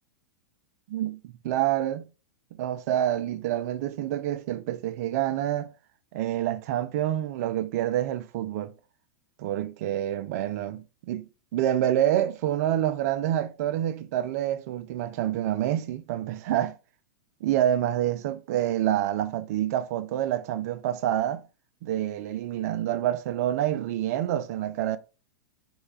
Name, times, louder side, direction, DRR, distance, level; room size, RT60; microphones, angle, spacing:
voice 1, 0.9-2.1 2.6-5.7 6.1-8.7 9.4-16.7 17.4-21.4 21.8-25.0, right 12 dB, 55° right, 0.5 m, -27 dB
4.5 x 3.3 x 3.2 m
hypercardioid pair, 110°, 10 cm